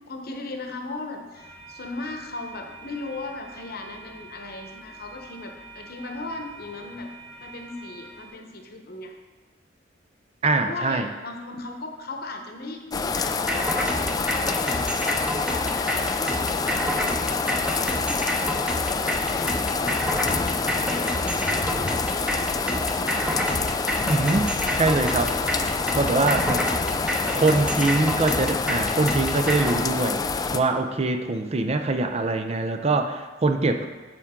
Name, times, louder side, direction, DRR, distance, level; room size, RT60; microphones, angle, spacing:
voice 1, 0.1-7.1 7.4-9.1 10.6-15.0 15.3-20.0 20.3-23.6 26.4-26.9 27.5-28.4, left 2 dB, 55° left, 4 dB, 1.0 m, -38 dB
sound 1, 1.3-8.3, right 3 dB, 70° right, 1.2 m, -46 dB
voice 2, 10.4-11.1 24.0-25.4 25.9-26.6 27.3-30.2 30.5-33.9, right 3 dB, 35° right, 7 dB, 0.5 m, -23 dB
sound 2, 12.9-30.6, left 4 dB, 20° left, 0.3 m, -27 dB
sound 3, 13.5-29.7, equal, 5° right, 0.8 m, -29 dB
9.0 x 6.6 x 3.7 m, 1.4 s
head